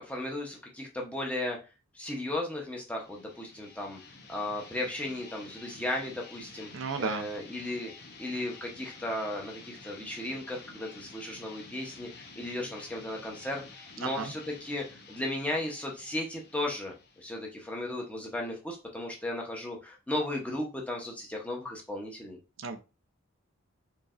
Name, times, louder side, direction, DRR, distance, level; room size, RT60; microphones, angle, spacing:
voice 1, 0.0-1.6 1.9-4.0 4.3-6.7 7.0-7.9 8.2-13.6 14.0-22.4, left 1 dB, 5° left, -1 dB, 0.8 m, -35 dB
sound 1, 2.8-18.3, left 4 dB, 50° left, 0.8 m, -50 dB
voice 2, 6.7-7.3 14.0-14.3 22.6-22.8, right 4 dB, 65° right, 7 dB, 0.6 m, -33 dB
4.6 x 3.2 x 2.5 m, 0.30 s
head